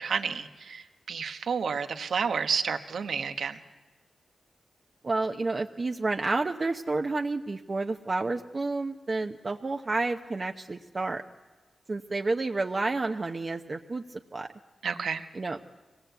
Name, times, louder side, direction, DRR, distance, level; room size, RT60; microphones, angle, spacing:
voice 1, 0.0-3.6 14.8-15.2, right 6 dB, 80° right, 8 dB, 1.3 m, -30 dB
voice 2, 5.0-11.2 11.9-14.5 15.3-15.6, right 3 dB, 40° right, 3 dB, 0.9 m, -30 dB
24.0 x 18.5 x 8.2 m, 1.3 s
cardioid pair, 75°, 0 cm